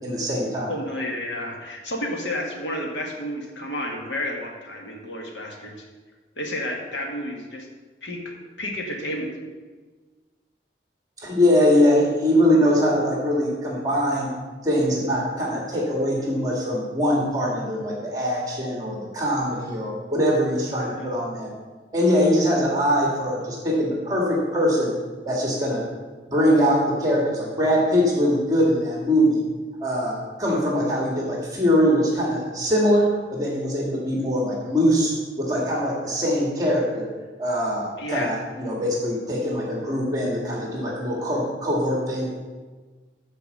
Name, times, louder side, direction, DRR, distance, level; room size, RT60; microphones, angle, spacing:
voice 1, 0.0-0.7 11.2-14.3 14.6-21.5 21.9-24.9 25.3-25.8 26.3-29.4 29.8-35.1 35.4-37.1 37.4-42.3, equal, 20° right, -3 dB, 1.8 m, -22 dB
voice 2, 0.7-5.9 6.4-7.7 8.0-9.3 20.9-21.1 38.0-38.3, left 1 dB, 85° left, 1 dB, 1.8 m, -31 dB
13.0 x 4.6 x 6.6 m, 1.4 s
head